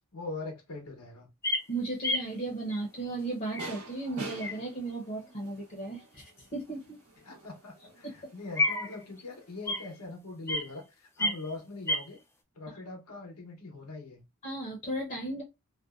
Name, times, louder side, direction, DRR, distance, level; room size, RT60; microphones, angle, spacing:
voice 1, 0.1-1.3 7.2-12.2 12.5-14.2, left 3 dB, 90° left, 0.9 m, -42 dB
sound 1, 1.4-1.6 2.0-2.2 2.7-2.8 3.5-3.9 4.4-4.5 8.6-9.2 9.7-9.9 10.5-10.7 11.2-11.5 11.9-12.0, left 2 dB, 10° left, 0.3 m, -29 dB
voice 2, 1.7-7.0 11.2-11.3 14.4-15.4, right 2 dB, 35° left, 0.7 m, -35 dB
sound 2, 2.2-10.0, right 3 dB, 80° right, 0.8 m, -49 dB
2.6 x 2.1 x 2.3 m
head